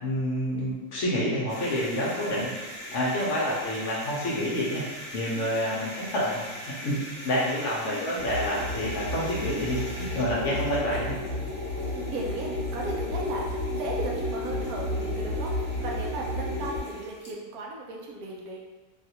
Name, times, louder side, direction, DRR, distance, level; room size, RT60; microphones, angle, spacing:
voice 1, 0.0-2.5 2.9-4.8 5.1-7.0 7.2-11.1, equal, 60° left, -5 dB, 0.9 m, -28 dB
sound 1, 1.5-17.4, equal, 40° left, 1.1 m, -42 dB
voice 2, 5.3-5.9 7.9-8.3 10.4-11.1 11.8-18.6, right 2 dB, 75° right, -2 dB, 1.1 m, -37 dB
sound 2, 8.2-16.8, left 1 dB, 55° right, 1.8 m, -32 dB
3.4 x 2.4 x 2.8 m, 1.2 s
omnidirectional pair, 1.6 m